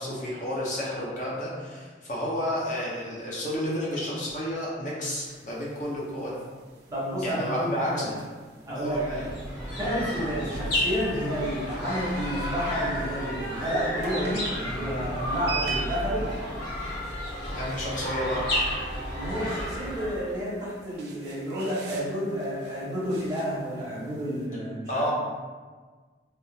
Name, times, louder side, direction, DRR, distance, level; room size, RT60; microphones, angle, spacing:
voice 1, 0.0-6.5 7.2-8.1 8.7-9.2 17.5-18.4 24.9-25.1, equal, 45° left, -5 dB, 0.8 m, -31 dB
sound 1, 5.1-24.5, right 5 dB, 65° right, 0.5 m, -44 dB
voice 2, 6.9-8.2 8.7-9.3 9.8-16.3 19.1-25.1, equal, 20° right, -9 dB, 1.0 m, -30 dB
sound 2, 8.8-20.4, equal, 70° left, 0.8 m, -32 dB
3.5 x 2.7 x 2.4 m, 1.5 s
head